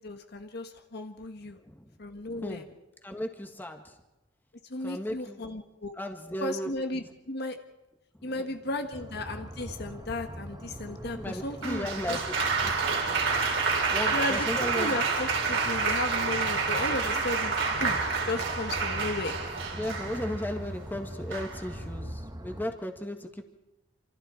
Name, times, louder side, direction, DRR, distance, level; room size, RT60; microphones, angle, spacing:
voice 1, 0.0-1.6 2.0-2.6 4.7-5.9 6.4-7.6 8.2-12.2 12.6-12.7 14.1-14.5 14.7-18.0 18.2-19.3, left 2 dB, 60° left, 6 dB, 1.5 m, -35 dB
voice 2, 1.4-2.0 2.3-2.6 3.0-4.0 4.8-5.4 5.9-7.1 8.2-8.5 10.9-12.2 12.6-12.7 13.1-13.2 13.9-14.9 16.8-17.2 19.8-23.4, left 1 dB, 10° left, 4 dB, 1.7 m, -36 dB
sound 1, 8.9-22.6, equal, 20° right, 1.3 m, -41 dB
Applause, 11.6-20.5 21.3-21.7, right 4 dB, 80° right, 4.0 m, -29 dB
27.0 x 26.5 x 4.4 m, 1.0 s
head